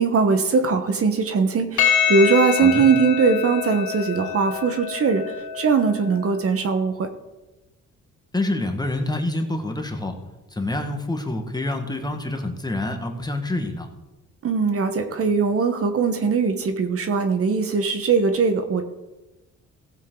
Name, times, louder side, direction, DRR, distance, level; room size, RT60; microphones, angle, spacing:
voice 1, 0.0-5.2 5.5-7.1 14.4-18.8, right 5 dB, 50° right, 7 dB, 1.2 m, -20 dB
Percussion, 1.8-6.4, left 8 dB, 75° left, 2.9 m, -26 dB
voice 2, 8.3-10.1 10.5-13.9, left 2 dB, 15° left, 4 dB, 1.5 m, -27 dB
16.0 x 7.5 x 3.8 m, 1.1 s
cardioid pair, 90°, 30 cm